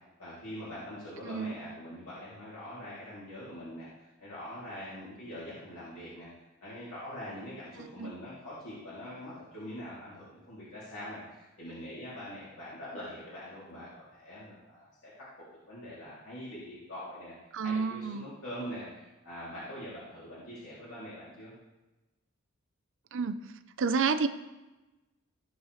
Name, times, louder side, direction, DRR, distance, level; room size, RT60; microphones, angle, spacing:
voice 1, 0.2-6.3 6.6-15.1 15.7-21.5, equal, 65° left, -9 dB, 2.8 m, -43 dB
voice 2, 1.2-1.6 7.8-8.1 17.5-18.3 23.1-23.4 23.8-24.3, right 5 dB, 60° right, 10 dB, 0.6 m, -30 dB
16.0 x 7.1 x 3.2 m, 1.1 s
head